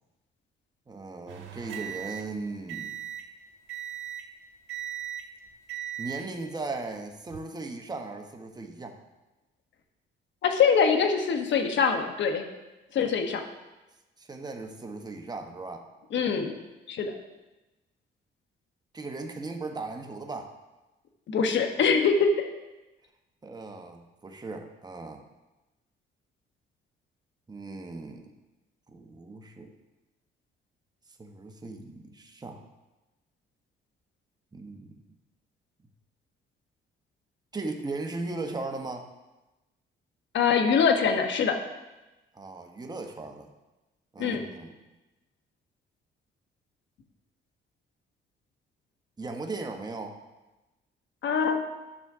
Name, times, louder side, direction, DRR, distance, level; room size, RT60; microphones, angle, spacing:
voice 1, 0.9-3.0 6.0-9.0 14.2-15.8 18.9-20.5 23.4-25.2 27.5-28.3 28.9-29.7 31.2-32.6 34.5-34.9 37.5-39.1 42.3-43.5 44.1-44.8 49.2-50.2, right 3 dB, 20° right, 4 dB, 1.2 m, -37 dB
sound 1, 1.3-3.3 3.7-4.3 4.7-5.3 5.7-6.3 7.1-7.4, right 10 dB, 80° right, 1.3 m, -38 dB
voice 2, 10.4-12.4 12.9-13.4 16.1-16.5 16.9-17.1 21.3-22.5 40.3-41.5 44.2-44.4 51.2-51.6, left 6 dB, 65° left, 5 dB, 1.1 m, -23 dB
12.5 x 6.2 x 3.7 m, 1.1 s
cardioid pair, 90°, 20 cm